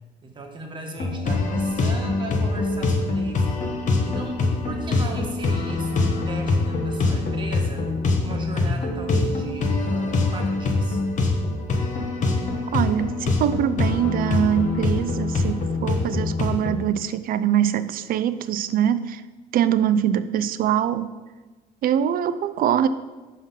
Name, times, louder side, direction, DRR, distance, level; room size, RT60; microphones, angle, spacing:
voice 1, 0.2-7.9 8.2-11.0, right 2 dB, 30° right, 1 dB, 1.4 m, -38 dB
sound 1, 1.0-16.8, left 3 dB, 50° left, 1.2 m, -24 dB
voice 2, 12.7-19.2 19.5-21.2 21.8-22.9, right 10 dB, 60° right, 13 dB, 0.5 m, -23 dB
5.9 x 5.7 x 5.6 m, 1.3 s
cardioid pair, 110°, 17 cm